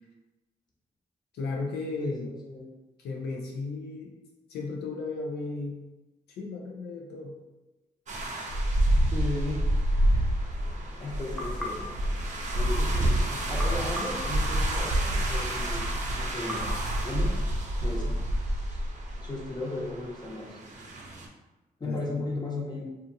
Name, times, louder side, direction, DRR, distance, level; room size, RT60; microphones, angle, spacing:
voice 1, 1.3-2.3 3.0-4.1 4.5-5.8 6.3-7.4 21.8-22.2, left 3 dB, 85° left, -1 dB, 0.4 m, -35 dB
voice 2, 2.0-2.7 9.0-9.6 11.0-11.8 12.5-16.7 17.0-17.3 17.8-18.2 18.7-18.8 19.2-20.6 21.8-22.9, left 2 dB, 25° left, -3 dB, 0.8 m, -35 dB
sound 1, 8.1-21.3, right 1 dB, 50° right, 0.5 m, -28 dB
sound 2, 11.4-13.0 13.6-15.2 16.5-17.8, left 1 dB, ahead, 0.6 m, -41 dB
2.5 x 2.4 x 2.6 m, 1.1 s
supercardioid pair, 55°, 16 cm